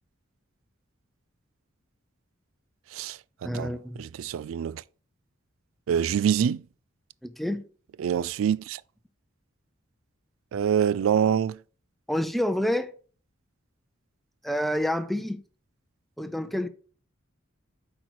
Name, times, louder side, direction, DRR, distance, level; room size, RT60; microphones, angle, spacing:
voice 1, 2.9-3.7 4.0-4.8 5.9-6.6 8.0-8.8 10.5-11.6, right 8 dB, 80° right, 0.3 m, -25 dB
voice 2, 3.4-4.0 7.2-7.6 12.1-12.9 14.4-15.4 16.2-16.7, left 1 dB, ahead, 0.5 m, -28 dB
8.0 x 4.6 x 4.7 m
head